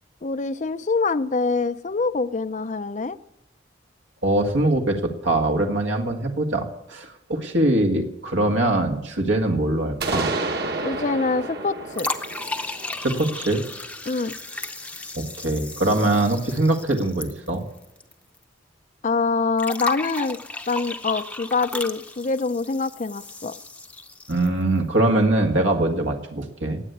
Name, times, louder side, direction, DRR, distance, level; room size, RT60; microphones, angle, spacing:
voice 1, 0.2-3.2 10.8-12.1 14.1-14.3 19.0-20.4 20.7-23.5, left 4 dB, 40° left, 12 dB, 0.5 m, -25 dB
voice 2, 4.2-10.3 13.0-13.6 15.2-17.6 24.3-26.8, right 2 dB, 75° right, 4 dB, 1.8 m, -22 dB
sound 1, 10.0-13.8, right 3 dB, 55° right, 1.7 m, -30 dB
sound 2, 11.9-18.1 18.4-18.5 19.6-24.6, left 2 dB, 5° left, 0.7 m, -34 dB
18.5 x 8.1 x 8.0 m, 0.94 s
head